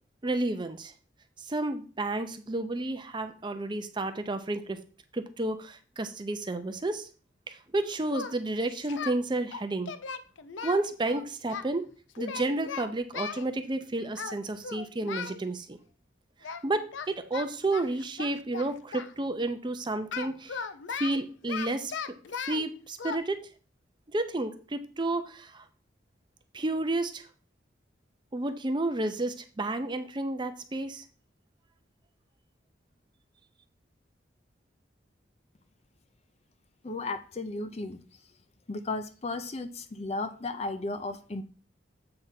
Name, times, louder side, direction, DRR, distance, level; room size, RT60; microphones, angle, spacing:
voice 1, 0.2-0.9 1.4-4.8 5.1-7.1 7.5-9.9 10.6-11.9 12.2-15.8 16.6-20.6 20.9-21.9 22.4-23.4 24.1-25.6 26.5-27.3 28.3-31.0, right 2 dB, 25° right, 9 dB, 0.6 m, -31 dB
Singing, 8.1-9.2 9.5-11.7 12.2-13.5 14.2-14.4 14.6-15.4 16.4-16.6 16.9-19.1 20.1-22.7 23.0-23.2, left 6 dB, 85° left, 0.5 m, -37 dB
voice 2, 36.8-38.0 38.7-41.4, left 2 dB, 35° left, 10 dB, 0.5 m, -34 dB
7.7 x 3.4 x 5.8 m, 0.39 s
head